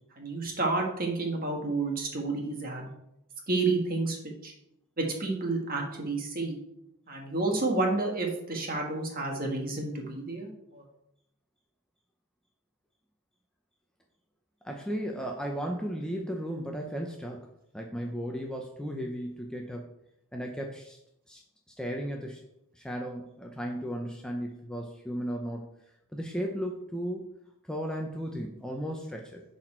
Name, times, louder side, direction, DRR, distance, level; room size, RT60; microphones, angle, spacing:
voice 1, 0.2-2.9 3.5-4.2 4.4-4.5 5.0-6.6 7.1-10.8, right 3 dB, 40° right, 1 dB, 1.6 m, -30 dB
voice 2, 14.6-17.5 17.7-19.9 20.3-21.0 21.3-21.4 21.8-22.4 22.8-25.7 26.1-27.3 27.7-29.4, equal, 5° left, 1 dB, 0.6 m, -35 dB
10.5 x 4.2 x 4.4 m, 0.80 s
head